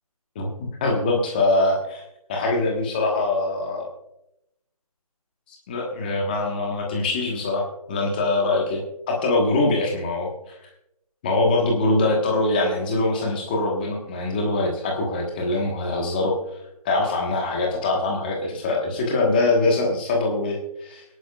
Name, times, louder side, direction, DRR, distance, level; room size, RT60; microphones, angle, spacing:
voice 1, 0.3-2.0 2.3-3.9 5.7-10.5 11.2-16.4 16.8-21.0, left 2 dB, 15° left, 0 dB, 1.3 m, -23 dB
23.0 x 11.0 x 2.4 m, 0.82 s
figure-of-eight pair, 165°, 20 cm